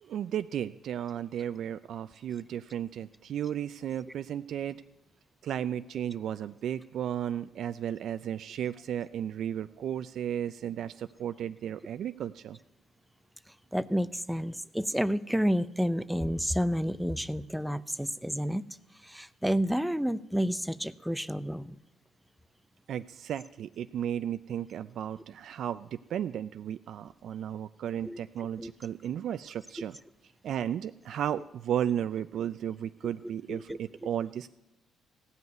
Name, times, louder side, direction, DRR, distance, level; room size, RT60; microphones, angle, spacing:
voice 1, 0.0-4.8 5.4-12.6 22.9-30.0 30.4-34.5, right 10 dB, 65° right, 12 dB, 0.3 m, -34 dB
voice 2, 13.7-18.6 19.0-21.8 28.0-28.2 28.6-28.7 33.5-33.8, equal, ahead, 16 dB, 0.5 m, -30 dB
15.5 x 5.5 x 9.3 m, 0.92 s
cardioid pair, 85°, 0 cm